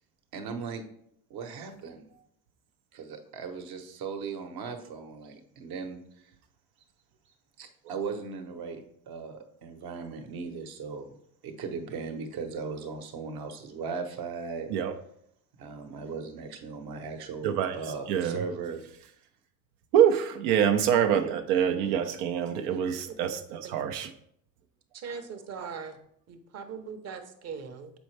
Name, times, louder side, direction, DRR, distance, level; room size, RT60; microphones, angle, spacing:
voice 1, 0.3-0.8 1.3-2.0 2.9-6.3 7.6-11.1 11.4-14.7 15.6-18.9 21.8-22.1 22.8-23.0, right 5 dB, 60° right, 5 dB, 1.1 m, -38 dB
voice 2, 17.4-17.8 18.1-18.4 19.9-24.1, right 9 dB, 80° right, 7 dB, 0.8 m, -25 dB
voice 3, 24.9-26.0 26.3-27.9, right 6 dB, 35° right, 8 dB, 0.9 m, -40 dB
6.9 x 4.3 x 3.3 m, 0.70 s
supercardioid pair, 95°, 43 cm